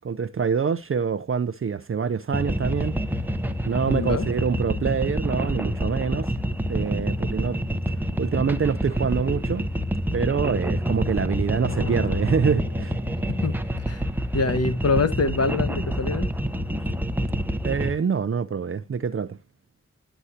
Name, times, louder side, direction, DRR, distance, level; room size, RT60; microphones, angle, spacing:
voice 1, 0.0-2.9 3.6-6.3 6.7-7.6 8.2-9.6 10.1-13.0 17.6-19.4, right 6 dB, 45° right, 0.6 m, -25 dB
sound 1, 2.3-17.9, equal, 5° right, 1.1 m, -27 dB
voice 2, 3.9-4.3 13.3-13.6 13.9-14.0 14.3-16.3, left 3 dB, 60° left, 1.3 m, -24 dB
Thunder, 11.4-13.6, left 3 dB, 85° left, 1.6 m, -38 dB
11.0 x 8.0 x 2.8 m
cardioid pair, 60°, 29 cm